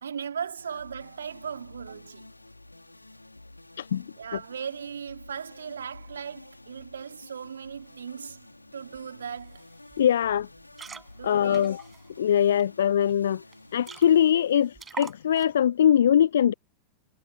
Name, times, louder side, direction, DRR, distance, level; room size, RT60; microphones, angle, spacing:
voice 1, 0.0-2.3 4.2-8.5 8.7-9.7 11.2-11.8, right 7 dB, 70° right, 3.3 m, -38 dB
sound 1, 0.6-16.0, left 2 dB, 85° left, 4.8 m, -50 dB
sound 2, 8.9-9.0 9.3-9.6 9.9-10.1 10.6-12.6 13.1-13.2 13.5-13.6 13.8-14.4 14.7-15.6, right 5 dB, 15° right, 6.3 m, -43 dB
voice 2, 10.0-10.5 11.2-11.8 12.2-13.4 13.7-16.5, left 9 dB, 65° left, 0.5 m, -22 dB
figure-of-eight pair, 90°, 0 cm